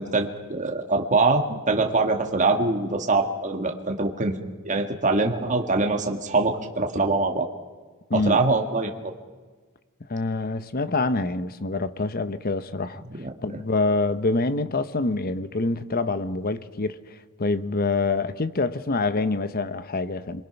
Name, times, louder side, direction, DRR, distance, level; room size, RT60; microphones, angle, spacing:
voice 1, 0.0-7.5 8.1-8.9 13.2-13.3, right 3 dB, 35° right, 1.6 m, -23 dB
voice 2, 8.1-8.4 10.1-13.0 13.4-17.0 17.4-20.5, left 3 dB, 40° left, 0.9 m, -26 dB
27.0 x 23.0 x 5.9 m
head